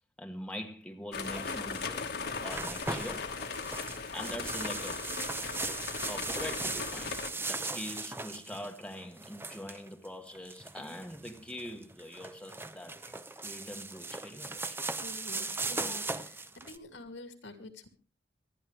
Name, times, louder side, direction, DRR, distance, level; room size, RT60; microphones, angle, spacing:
voice 1, 0.2-3.3 4.1-5.0 6.1-14.8 15.8-16.0, left 1 dB, 5° left, 1.2 m, -43 dB
sound 1, 1.1-7.3, left 5 dB, 60° left, 1.5 m, -38 dB
sound 2, 1.2-16.8, right 3 dB, 15° right, 0.7 m, -39 dB
voice 2, 15.0-16.4 16.7-17.9, left 2 dB, 90° left, 2.6 m, -47 dB
25.0 x 10.5 x 3.3 m
head